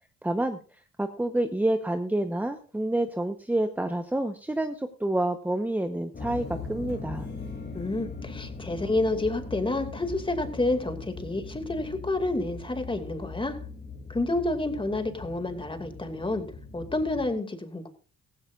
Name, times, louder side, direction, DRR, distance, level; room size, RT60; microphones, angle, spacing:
voice 1, 0.2-0.6 1.0-7.3, right 1 dB, 5° right, 7 dB, 1.0 m, -28 dB
sound 1, 6.1-17.3, left 4 dB, 35° left, 2.7 m, -40 dB
voice 2, 7.7-13.6 14.1-16.4 16.7-17.9, left 2 dB, 15° left, 7 dB, 2.3 m, -29 dB
16.5 x 15.0 x 2.5 m, 0.39 s
cardioid pair, 90°, 30 cm